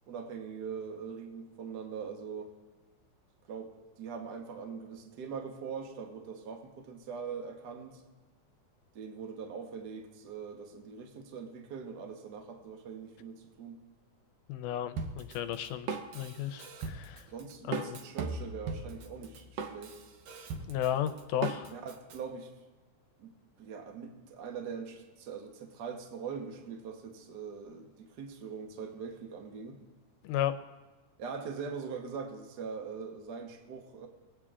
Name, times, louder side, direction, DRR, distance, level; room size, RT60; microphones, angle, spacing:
voice 1, 0.1-2.5 3.5-8.0 8.9-13.8 17.3-20.0 21.7-22.5 23.2-23.3 23.6-29.8 31.2-34.1, right 6 dB, 85° right, 3 dB, 0.9 m, -42 dB
voice 2, 14.5-17.3 17.7-18.0 20.7-21.7 30.2-30.5, left 11 dB, 90° left, 9 dB, 2.1 m, -34 dB
Drum kit, 15.0-22.2, right 4 dB, 70° right, 1.7 m, -39 dB
20.5 x 9.0 x 2.5 m, 1.2 s
omnidirectional pair, 3.6 m